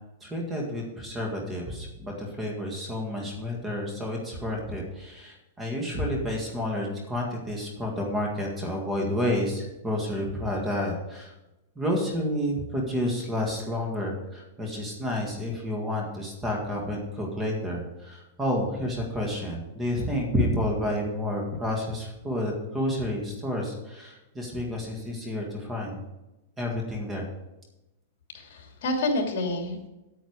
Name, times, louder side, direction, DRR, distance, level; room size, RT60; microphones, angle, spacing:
voice 1, 0.2-11.3 11.8-26.0 26.6-27.3, left 1 dB, 10° right, 0 dB, 1.8 m, -30 dB
voice 2, 28.3-29.9, left 2 dB, 60° left, 2 dB, 2.9 m, -28 dB
9.3 x 9.1 x 5.0 m, 0.98 s
supercardioid pair, 160°, 0 cm